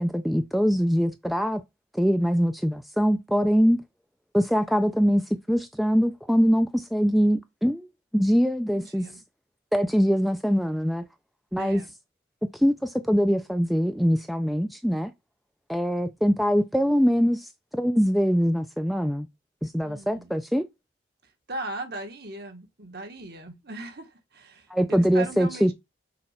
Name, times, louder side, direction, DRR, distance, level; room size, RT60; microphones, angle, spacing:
voice 1, 0.0-1.6 1.9-3.8 4.3-5.2 5.5-7.9 8.1-9.0 9.7-11.0 11.5-11.8 12.5-15.1 15.7-19.3 19.6-20.6 24.7-25.7, equal, ahead, 0.5 m, -23 dB
voice 2, 8.7-9.2 11.5-11.9 19.8-20.4 21.5-25.7, right 2 dB, 55° right, 1.5 m, -38 dB
6.6 x 4.3 x 5.7 m
head